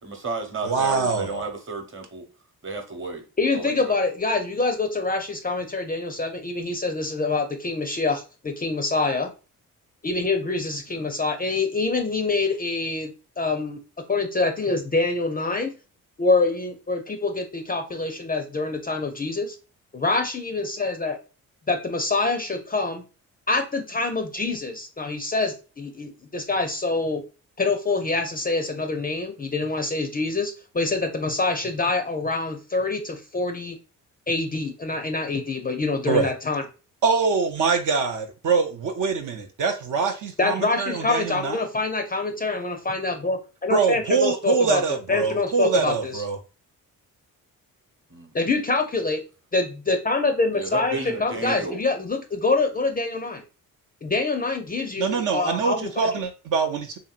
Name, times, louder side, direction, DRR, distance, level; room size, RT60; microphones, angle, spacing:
voice 1, 0.0-2.2 2.6-3.2 3.5-3.9 10.9-11.0 48.1-48.3 50.5-51.8, right 3 dB, 35° right, 1.0 m, -32 dB
voice 2, 0.6-1.5 36.1-36.3 37.0-41.6 43.7-46.4 55.0-57.0, right 5 dB, 55° right, 0.5 m, -24 dB
voice 3, 3.4-9.3 10.0-13.8 14.1-15.7 16.2-19.6 19.9-21.2 21.7-23.0 23.5-27.2 27.6-33.8 34.3-36.6 40.4-46.2 48.3-49.2 49.5-53.4 54.0-56.1, left 3 dB, 25° left, 0.5 m, -25 dB
2.8 x 2.7 x 2.4 m
cardioid pair, 70°, 38 cm